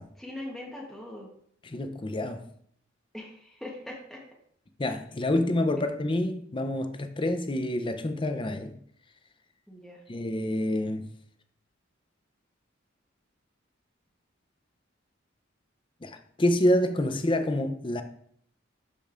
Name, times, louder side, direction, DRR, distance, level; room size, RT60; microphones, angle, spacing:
voice 1, 0.2-1.3 3.1-4.2 9.7-10.0, left 1 dB, ahead, 1.1 m, -41 dB
voice 2, 1.6-2.4 4.8-8.7 10.1-11.1 16.0-18.0, left 1 dB, 25° left, 0.6 m, -27 dB
12.0 x 5.2 x 2.5 m
head